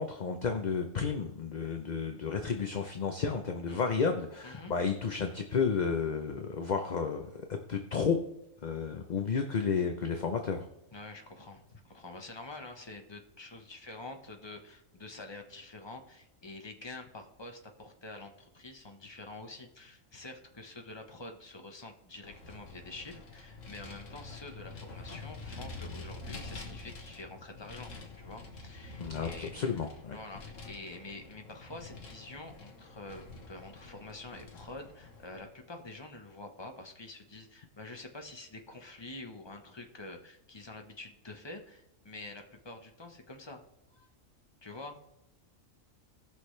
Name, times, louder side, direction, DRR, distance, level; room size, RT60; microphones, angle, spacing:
voice 1, 0.0-8.2 8.6-10.7 29.0-30.2, left 5 dB, 45° left, 5 dB, 0.7 m, -32 dB
voice 2, 4.4-4.7 10.9-27.9 28.2-29.5 30.1-43.6 43.9-44.1 44.6-45.0, left 2 dB, 20° left, 4 dB, 1.0 m, -47 dB
Vehicle, 22.2-35.5, left 3 dB, 70° left, 1.7 m, -47 dB
18.0 x 6.1 x 3.3 m, 0.85 s
omnidirectional pair, 1.4 m